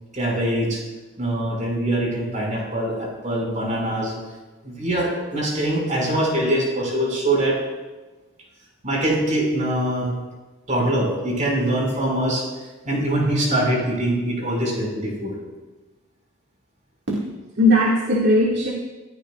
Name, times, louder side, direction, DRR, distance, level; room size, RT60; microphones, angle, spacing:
voice 1, 0.1-0.8 1.2-4.1 4.6-7.6 8.8-10.1 10.7-12.5 12.8-15.3, right 1 dB, 40° right, -2 dB, 5.8 m, -23 dB
voice 2, 17.1-18.7, left 1 dB, 60° right, -4 dB, 2.1 m, -19 dB
27.5 x 15.5 x 2.5 m, 1.2 s
head